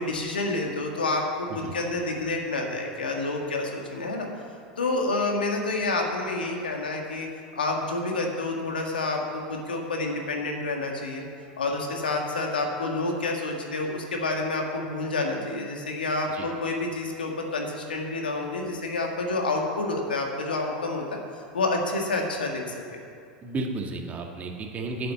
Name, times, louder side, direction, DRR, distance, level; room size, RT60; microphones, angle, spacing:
voice 1, 0.0-4.3 4.8-7.3 7.5-11.2 11.6-21.2 21.5-22.6 22.9-23.0, left 2 dB, 90° left, 1 dB, 1.7 m, -28 dB
voice 2, 23.4-25.1, right 2 dB, 30° right, 2 dB, 1.6 m, -33 dB
8.6 x 7.8 x 8.5 m, 2.4 s
hypercardioid pair, 90°, 5 cm